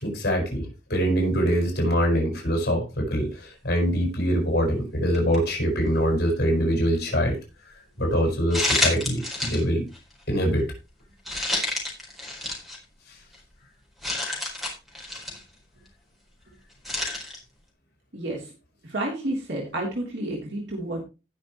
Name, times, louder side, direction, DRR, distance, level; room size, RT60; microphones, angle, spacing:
voice 1, 0.0-7.4 8.0-9.8 10.3-10.6, equal, 60° left, 1 dB, 5.7 m, -24 dB
sound 1, 5.1-5.4 6.0-6.1 8.5-9.6 9.9-10.1 11.3-12.8 13.3-13.4 14.0-15.4 16.8-17.4, left 2 dB, ahead, 4.3 m, -28 dB
voice 2, 18.1-18.4 18.9-21.0, right 1 dB, 80° right, -2 dB, 3.2 m, -30 dB
18.5 x 6.4 x 3.1 m, 0.29 s
head